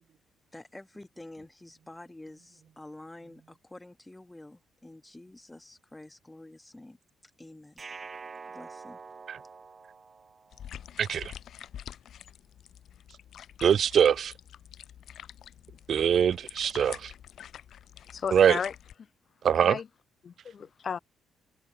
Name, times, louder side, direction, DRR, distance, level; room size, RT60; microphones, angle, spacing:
voice 1, 0.5-7.0 7.4-7.8 8.5-9.0, left 1 dB, 10° left, 6.2 m, -48 dB
sound 1, 7.8-10.9, right 4 dB, 35° right, 3.8 m, -46 dB
sound 2, 10.5-18.9, left 10 dB, 65° left, 4.1 m, -47 dB
voice 2, 11.0-11.3 13.6-14.3 15.9-17.1 18.3-18.6 19.4-19.8, right 8 dB, 60° right, 0.3 m, -23 dB
voice 3, 18.1-18.7 19.6-19.9 20.2-21.0, left 6 dB, 50° left, 1.5 m, -34 dB
cardioid pair, 90°, 0 cm